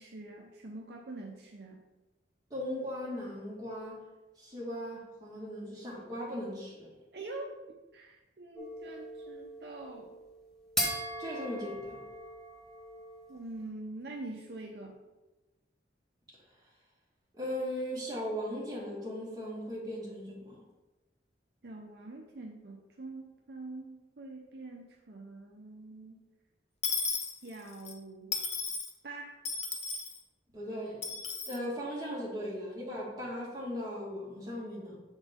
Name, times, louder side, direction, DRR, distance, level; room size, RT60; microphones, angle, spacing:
voice 1, 0.0-1.8 7.1-7.6 7.9-10.1 13.3-15.0 21.6-26.2 27.1-28.4 29.0-29.4, right 2 dB, 65° right, 0 dB, 0.7 m, -45 dB
voice 2, 2.5-4.0 4.4-6.9 11.2-12.0 17.3-20.6 30.5-31.0 31.5-35.0, equal, 20° right, -5 dB, 1.9 m, -38 dB
sound 1, 8.6-13.4, equal, 5° left, 1.4 m, -39 dB
Dishes pots and pans / Coin (dropping), 26.8-27.9 28.3-28.9 29.4-30.2 31.0-31.6, left 5 dB, 40° left, 0.7 m, -34 dB
8.0 x 4.0 x 3.6 m, 1.1 s
head